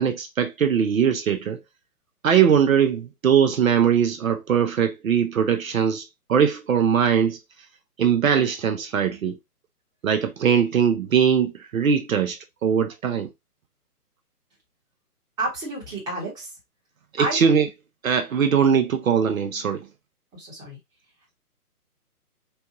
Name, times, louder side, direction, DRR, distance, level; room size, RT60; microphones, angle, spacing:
voice 1, 0.0-1.6 2.2-7.4 8.0-9.4 10.0-13.3 17.1-17.7 18.0-19.9, right 7 dB, 60° right, 0.8 m, -21 dB
voice 2, 15.4-16.5 17.2-17.4 20.3-20.8, right 2 dB, 10° right, 1.0 m, -30 dB
4.4 x 2.3 x 2.8 m
figure-of-eight pair, 140°, 47 cm